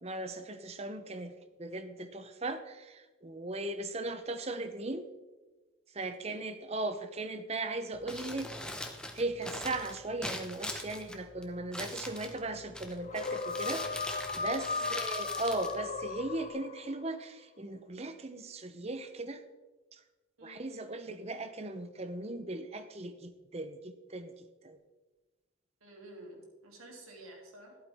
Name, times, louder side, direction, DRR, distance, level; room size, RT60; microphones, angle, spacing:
voice 1, 0.0-1.3 1.6-5.1 5.9-8.5 9.1-19.4 19.9-20.0 20.4-24.8, right 2 dB, 30° right, 9 dB, 0.7 m, -38 dB
Crumpling crinkling, 7.9-16.5, left 1 dB, 5° left, 0.8 m, -42 dB
sound 1, 13.0-17.1, left 4 dB, 35° left, 0.4 m, -36 dB
voice 2, 14.6-15.0 20.4-21.1 25.8-27.8, right 1 dB, 85° right, 0 dB, 2.8 m, -52 dB
12.5 x 11.5 x 3.5 m, 1.2 s
head